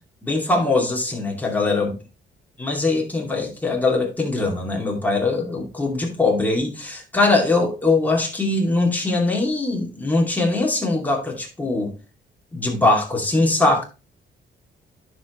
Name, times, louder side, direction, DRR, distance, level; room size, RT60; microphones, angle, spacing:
voice 1, 0.2-1.9 2.6-11.9 12.5-13.8, left 2 dB, 10° left, 2.7 m, -21 dB
11.0 x 5.3 x 3.1 m
cardioid pair, 90°, 20 cm